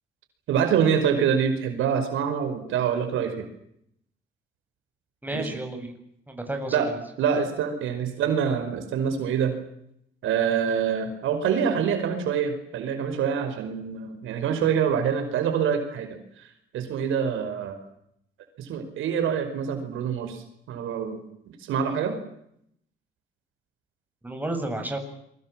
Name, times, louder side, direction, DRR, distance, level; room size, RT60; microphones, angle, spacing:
voice 1, 0.5-3.5 5.3-5.5 6.7-6.9 7.2-9.5 10.2-16.5 16.7-17.8 18.6-22.2, right 7 dB, 85° right, 7 dB, 5.3 m, -26 dB
voice 2, 5.2-5.9 6.3-6.9 24.2-25.0, right 1 dB, 10° right, 5 dB, 7.5 m, -31 dB
26.5 x 23.5 x 7.6 m, 0.74 s
cardioid pair, 90°, 20 cm